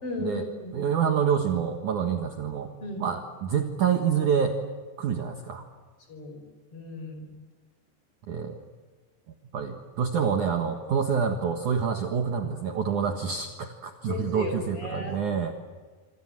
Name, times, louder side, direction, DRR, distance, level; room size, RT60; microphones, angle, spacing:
voice 1, 0.0-0.7 2.8-3.0 6.1-6.5 6.7-7.3 14.1-15.5, left 2 dB, 30° left, 4 dB, 5.8 m, -36 dB
voice 2, 0.7-2.7 3.0-4.6 5.0-5.7 8.3-8.6 9.5-15.5, right 7 dB, 60° right, 5 dB, 2.3 m, -27 dB
26.5 x 26.0 x 7.6 m, 1.5 s
omnidirectional pair, 5.1 m